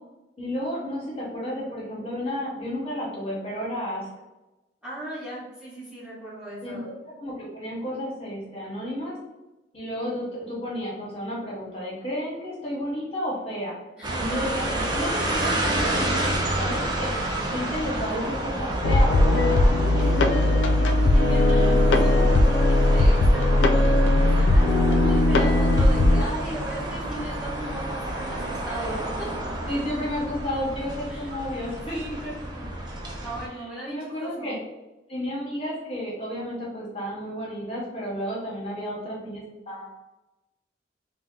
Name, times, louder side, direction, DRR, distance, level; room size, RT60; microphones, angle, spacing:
voice 1, 0.4-4.1 6.6-6.8 7.2-9.2 9.7-13.7 14.2-17.1 17.5-21.0 21.5-21.7 22.0-22.3 28.8-28.9 29.7-32.3 33.9-34.6 35.1-39.9, equal, 30° left, -5 dB, 0.8 m, -32 dB
voice 2, 4.8-6.9 14.0-14.2 16.1-16.7 19.9-20.3 21.0-29.3 31.1-31.3 31.9-32.1 33.2-34.6, right 1 dB, 5° right, -9 dB, 0.7 m, -37 dB
sound 1, 14.0-33.5, right 1 dB, 25° right, 0.4 m, -30 dB
sound 2, 18.8-26.2, left 2 dB, 75° left, 0.3 m, -19 dB
2.7 x 2.0 x 3.6 m, 1.0 s
head